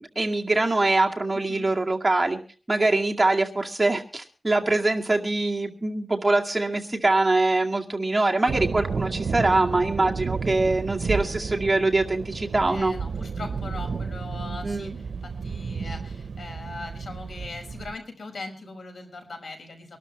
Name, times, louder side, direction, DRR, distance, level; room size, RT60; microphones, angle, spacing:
voice 1, 0.0-2.4 2.7-12.9 14.6-15.0, right 2 dB, 20° right, 1 dB, 2.2 m, -23 dB
voice 2, 1.3-1.7 12.7-20.0, left 3 dB, 85° left, 4 dB, 5.8 m, -40 dB
sound 1, 8.5-18.0, right 5 dB, 85° right, 0.7 m, -32 dB
25.0 x 12.5 x 3.0 m, 0.39 s
wide cardioid pair, 115°, 0 cm